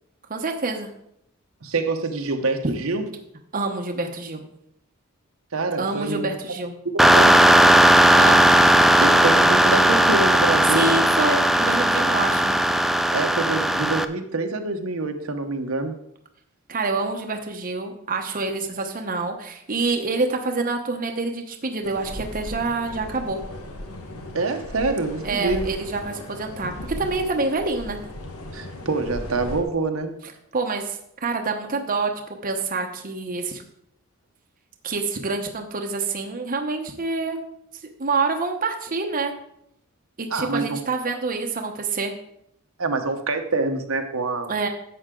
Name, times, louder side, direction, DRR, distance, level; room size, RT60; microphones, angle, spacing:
voice 1, 0.3-0.9 3.5-4.4 5.8-6.7 8.2-8.4 10.7-12.6 16.7-23.4 25.2-28.0 30.2-32.1 32.4-33.6 34.8-37.4 38.0-39.3 40.2-42.1 44.5-44.7, right 3 dB, 40° right, 3 dB, 0.9 m, -27 dB
voice 2, 1.6-3.1 5.5-6.3 6.8-7.4 9.0-11.0 13.1-15.9 24.3-25.7 28.5-30.1 40.3-40.8 42.8-44.5, right 3 dB, 70° right, 5 dB, 1.0 m, -26 dB
sound 1, 7.0-14.0, right 1 dB, ahead, 0.3 m, -16 dB
sound 2, 21.8-29.6, left 1 dB, 80° left, 1.4 m, -37 dB
11.0 x 7.9 x 3.8 m, 0.74 s
head